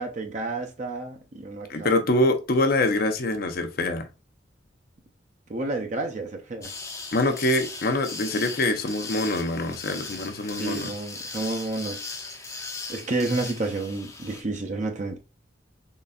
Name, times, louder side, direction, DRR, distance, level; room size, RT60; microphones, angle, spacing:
voice 1, 0.0-1.9 5.5-6.7 10.5-12.0 12.9-15.2, right 2 dB, 40° right, 0.6 m, -30 dB
voice 2, 1.7-4.1 7.1-10.9, left 2 dB, 55° left, 0.6 m, -24 dB
sound 1, 6.6-14.4, left 3 dB, 15° left, 0.6 m, -38 dB
3.8 x 3.2 x 2.3 m
head